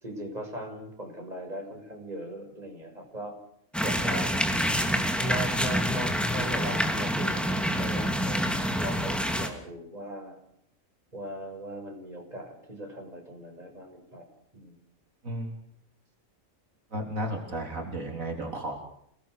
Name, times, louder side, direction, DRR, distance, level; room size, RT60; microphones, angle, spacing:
voice 1, 0.0-3.3 3.8-4.3 5.2-8.5 8.8-10.4 11.1-14.3 14.5-14.7, right 1 dB, 30° right, 2 dB, 6.8 m, -38 dB
sound 1, 3.7-9.5, equal, ahead, 2.9 m, -27 dB
voice 2, 16.9-18.8, right 1 dB, 80° right, 2 dB, 4.0 m, -33 dB
29.0 x 19.0 x 6.6 m, 0.68 s
omnidirectional pair, 1.4 m